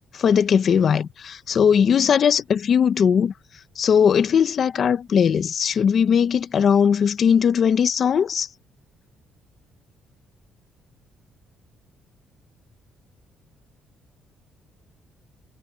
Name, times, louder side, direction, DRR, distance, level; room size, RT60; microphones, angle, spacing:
voice 1, 0.1-3.3 3.8-8.5, left 7 dB, 50° left, 1.0 m, -19 dB
cardioid pair, 105°, 0 cm